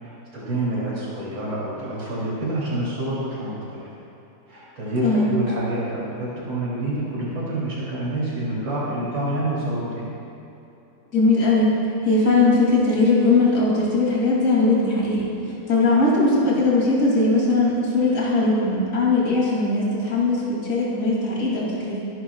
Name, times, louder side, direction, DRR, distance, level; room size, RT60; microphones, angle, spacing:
voice 1, 0.0-3.9 4.5-10.1, right 1 dB, 85° right, -7 dB, 4.0 m, -27 dB
voice 2, 5.0-5.4 11.1-11.7 12.0-15.3 15.7-22.0, left 3 dB, 45° left, -6 dB, 3.4 m, -19 dB
26.5 x 11.5 x 2.4 m, 2.9 s
omnidirectional pair, 2.0 m